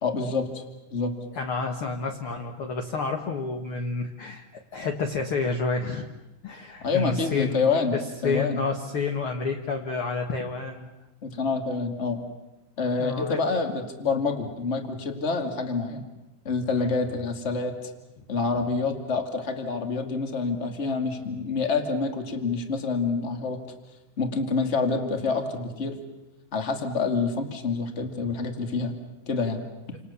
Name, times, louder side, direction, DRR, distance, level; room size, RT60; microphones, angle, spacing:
voice 1, 0.0-0.6 0.9-1.1 6.8-8.6 11.2-12.2 12.8-16.1 16.4-17.9 18.3-23.6 24.2-26.0 26.5-29.0 29.3-29.6, left 4 dB, 20° left, 5 dB, 2.2 m, -27 dB
voice 2, 1.3-4.5 4.7-6.1 6.4-7.6 8.2-10.9 13.0-13.4 16.8-16.9, left 4 dB, 50° left, 3 dB, 2.0 m, -29 dB
29.0 x 27.5 x 7.1 m, 1.0 s
omnidirectional pair, 4.0 m